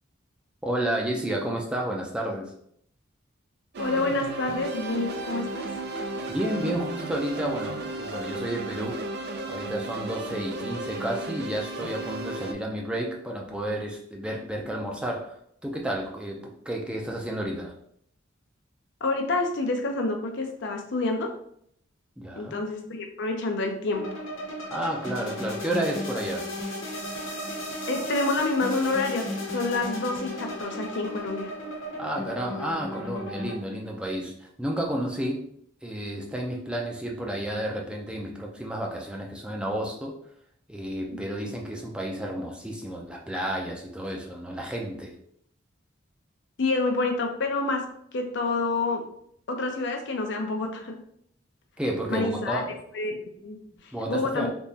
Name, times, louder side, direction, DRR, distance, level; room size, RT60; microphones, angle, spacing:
voice 1, 0.6-2.5 6.3-9.0 9.5-15.3 15.6-17.7 22.2-22.5 24.7-26.5 32.0-35.4 35.8-40.1 40.7-45.1 51.8-52.7 53.9-54.5, right 1 dB, 5° right, -1 dB, 0.5 m, -31 dB
sound 1, 3.7-12.5, right 2 dB, 55° right, 0.5 m, -34 dB
voice 2, 3.8-5.7 19.0-21.3 22.4-24.0 27.9-29.3 29.5-31.5 46.6-47.8 48.1-49.0 49.5-51.0 52.1-52.6 52.9-53.6 54.1-54.5, left 3 dB, 65° left, 4 dB, 0.6 m, -28 dB
sound 2, 23.9-33.6, left 1 dB, 85° left, 1.0 m, -35 dB
3.6 x 3.0 x 2.8 m, 0.68 s
head